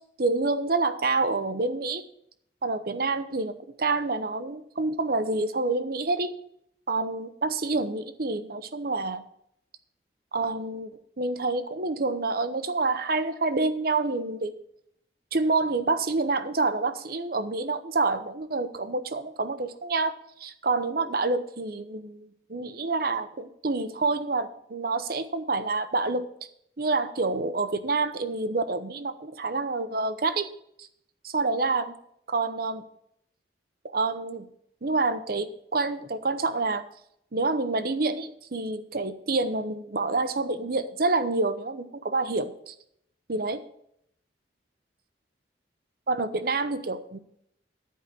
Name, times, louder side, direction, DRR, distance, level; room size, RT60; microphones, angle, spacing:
voice 1, 0.2-2.0 2.6-6.3 6.9-9.2 10.3-10.9 11.2-14.5 15.3-26.3 26.8-30.5 30.8-30.9 31.2-32.0 32.3-32.8 33.9-34.5 34.8-36.8 37.3-42.7 43.3-43.6 46.1-47.2, right 3 dB, 55° right, 11 dB, 0.8 m, -27 dB
11.0 x 5.0 x 8.3 m, 0.72 s
head